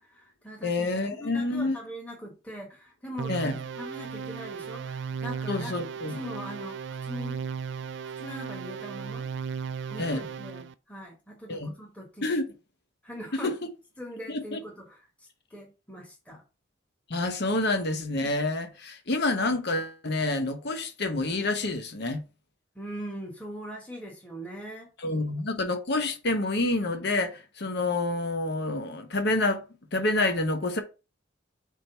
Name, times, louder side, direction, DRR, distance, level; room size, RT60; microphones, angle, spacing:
voice 1, 0.0-5.7 6.1-7.4 8.2-9.3 9.9-12.3 13.0-13.5 14.0-16.4 22.7-24.9, equal, 5° left, 1.2 m, -41 dB
voice 2, 0.6-1.8 3.3-3.6 5.5-6.2 10.0-10.3 11.5-11.7 12.2-12.5 13.4-13.5 14.3-14.6 17.1-22.2 25.0-29.6 29.9-30.8, left 2 dB, 60° left, 1.0 m, -28 dB
sound 1, 3.2-10.7, right 6 dB, 65° right, 0.4 m, -36 dB
4.5 x 3.7 x 5.5 m
head